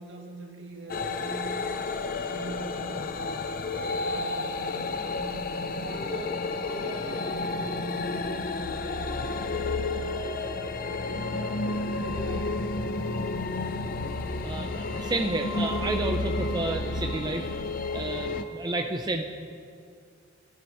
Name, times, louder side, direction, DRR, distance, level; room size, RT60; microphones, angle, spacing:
voice 1, 0.0-3.4 3.7-5.3 5.8-10.4 10.8-13.3, right 1 dB, 65° right, 1 dB, 1.7 m, -43 dB
sound 1, 0.9-18.4, left 3 dB, 45° left, 0.5 m, -31 dB
voice 2, 14.4-17.5 17.9-19.2, right 2 dB, 20° right, 3 dB, 0.5 m, -31 dB
17.5 x 13.5 x 3.1 m, 2.3 s
head